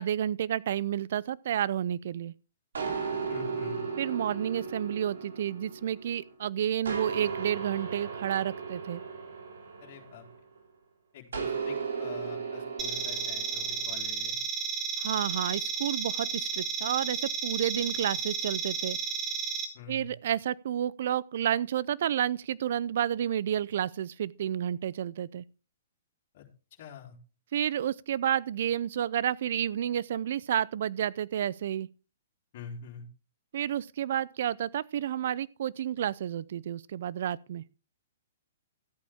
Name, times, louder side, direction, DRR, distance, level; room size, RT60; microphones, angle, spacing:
voice 1, 0.0-2.3 4.0-9.0 15.0-19.0 19.9-25.4 27.5-31.9 33.5-37.6, right 10 dB, 60° right, 0.5 m, -30 dB
sound 1, 2.7-6.3 6.8-10.6 11.3-14.0, right 5 dB, 80° right, 2.8 m, -36 dB
voice 2, 3.3-3.8 9.8-10.2 11.1-14.4 19.7-20.1 26.3-26.5 26.8-27.2 32.5-33.0, left 7 dB, 50° left, 3.4 m, -45 dB
sound 2, 12.8-19.7, right 6 dB, 25° right, 2.0 m, -33 dB
13.5 x 8.6 x 3.6 m
hypercardioid pair, 135°, 0 cm